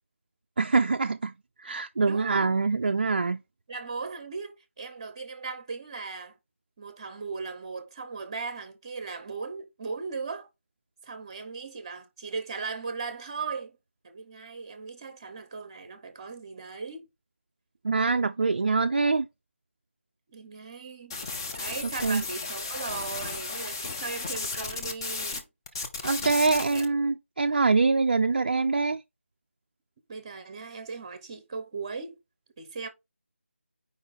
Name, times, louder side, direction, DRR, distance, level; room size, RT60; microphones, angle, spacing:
voice 1, 0.6-1.3 1.6-3.4 17.8-19.3 22.0-22.2 26.0-29.0, right 4 dB, 45° right, 0.3 m, -24 dB
voice 2, 2.0-2.5 3.7-6.3 6.8-10.5 11.0-13.8 14.0-17.1 20.3-25.4 26.6-26.8 30.1-32.2 32.6-32.9, right 4 dB, 25° right, 0.8 m, -38 dB
sound 1, 21.1-25.4 25.7-26.9, left 4 dB, 20° left, 0.6 m, -34 dB
4.9 x 3.8 x 5.2 m
figure-of-eight pair, 160°, 7 cm